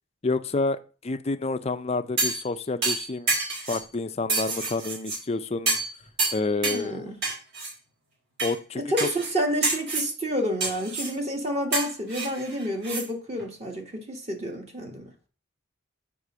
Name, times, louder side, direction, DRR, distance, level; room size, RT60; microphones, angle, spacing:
voice 1, 0.2-3.3 3.7-5.8 6.3-7.1 8.4-9.1, left 3 dB, 30° left, 0.5 m, -29 dB
sound 1, 2.2-2.5 2.8-3.8 4.3-5.2 5.7-5.9 6.2-6.8 7.2-7.7 8.4-8.5 9.0-9.3 9.6-10.1 10.6-11.1 11.7-13.0 13.4-13.5, right 3 dB, 55° right, 3.9 m, -28 dB
voice 2, 6.6-7.2 8.7-15.1, equal, 30° right, 1.5 m, -29 dB
8.2 x 3.7 x 6.1 m
head